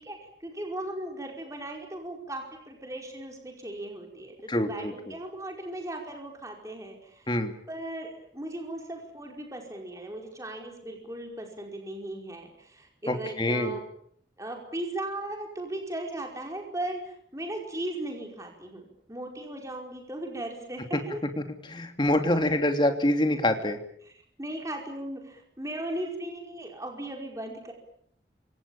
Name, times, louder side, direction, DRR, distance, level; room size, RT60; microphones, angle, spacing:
voice 1, 0.0-7.3 7.7-13.8 14.4-18.8 19.1-21.2 24.4-27.7, right 1 dB, 20° right, 2 dB, 5.1 m, -37 dB
voice 2, 4.5-5.1 7.3-7.5 13.1-13.8 20.9-21.0 21.4-23.8, left 1 dB, 25° left, 6 dB, 3.1 m, -26 dB
28.5 x 26.5 x 7.3 m, 0.66 s
head